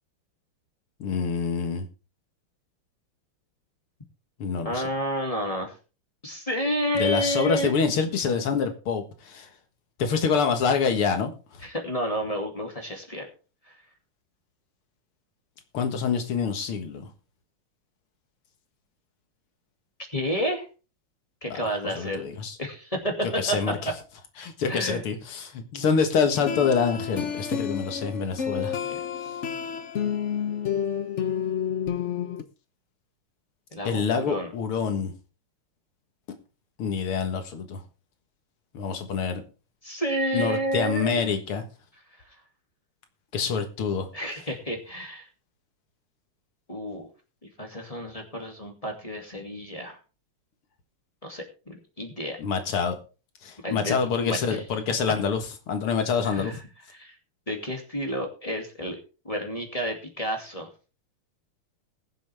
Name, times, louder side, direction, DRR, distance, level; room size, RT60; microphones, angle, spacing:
voice 1, 1.0-1.9 4.4-4.8 6.9-9.5 10.0-11.3 15.7-17.1 21.5-22.6 23.2-23.9 24.4-28.8 29.2-29.3 33.8-35.1 36.8-37.8 38.7-39.4 40.3-41.6 43.3-44.1 52.4-53.0 53.4-56.6, left 6 dB, 80° left, 2.4 m, -26 dB
voice 2, 4.6-5.7 6.2-7.7 11.6-13.3 13.7-13.8 20.1-20.7 21.4-22.3 22.6-23.9 24.7-25.0 28.9-29.0 33.7-34.5 39.8-41.2 44.1-45.3 46.7-47.1 47.4-50.0 51.2-52.4 53.6-54.6 56.2-56.6 56.9-57.2 57.5-59.0 59.2-60.7, equal, 15° left, 2.3 m, -30 dB
sound 1, 26.3-32.4, left 8 dB, 50° left, 0.9 m, -30 dB
20.5 x 7.5 x 3.5 m
omnidirectional pair, 2.4 m